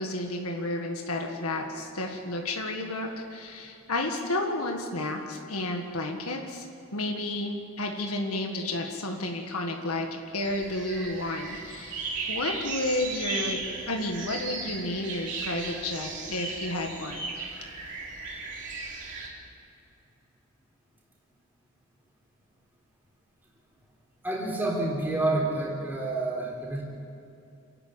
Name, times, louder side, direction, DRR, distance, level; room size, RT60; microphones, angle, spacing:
voice 1, 0.0-6.7 6.9-10.1 10.3-17.2, left 2 dB, 80° left, 2 dB, 1.8 m, -31 dB
sound 1, 10.4-19.3, right 4 dB, 55° right, 3.7 m, -36 dB
voice 2, 24.2-26.8, right 2 dB, 10° right, -3 dB, 3.8 m, -28 dB
28.5 x 12.0 x 8.7 m, 2.7 s
head